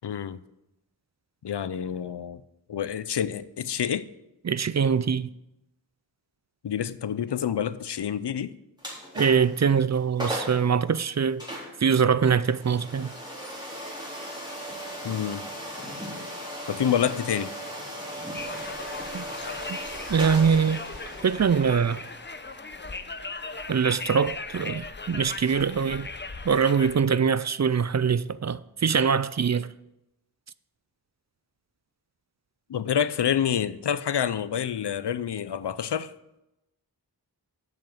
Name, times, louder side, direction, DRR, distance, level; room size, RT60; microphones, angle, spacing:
voice 1, 0.0-0.4 1.4-2.4 2.7-4.1 6.6-8.6 15.0-15.5 16.7-17.6 32.7-36.1, left 9 dB, 85° left, 0.6 m, -28 dB
voice 2, 4.4-5.3 9.2-11.4 11.8-13.1 19.1-19.2 19.7-19.8 20.1-20.8 21.2-22.0 23.7-26.1 26.4-29.7, right 6 dB, 45° right, 0.4 m, -23 dB
sound 1, 8.8-9.6 9.9-10.0 10.2-10.6 11.4-24.1, equal, 10° right, 3.8 m, -38 dB
Conversation, 18.3-27.0, left 3 dB, 30° left, 0.6 m, -38 dB
7.9 x 7.2 x 7.5 m
wide cardioid pair, 55°, 40 cm